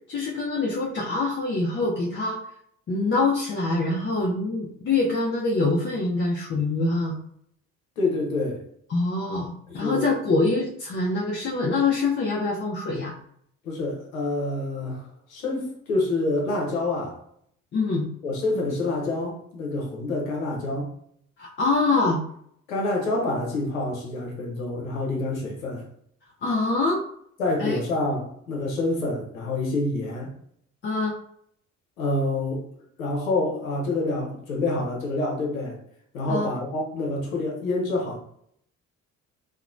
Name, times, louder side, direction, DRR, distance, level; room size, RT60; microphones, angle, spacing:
voice 1, 0.1-2.4 2.9-7.2 8.9-13.1 17.7-18.1 21.4-22.2 26.4-27.0 27.6-27.8 30.8-31.2 36.3-36.5, left 3 dB, 30° left, -2 dB, 0.5 m, -24 dB
voice 2, 8.0-8.6 9.7-10.1 13.6-17.2 18.2-20.9 22.7-25.9 27.4-30.3 32.0-32.7 33.0-35.8 36.1-38.2, left 2 dB, 85° left, -1 dB, 0.7 m, -27 dB
2.9 x 2.1 x 2.4 m, 0.68 s
hypercardioid pair, 50°, 40 cm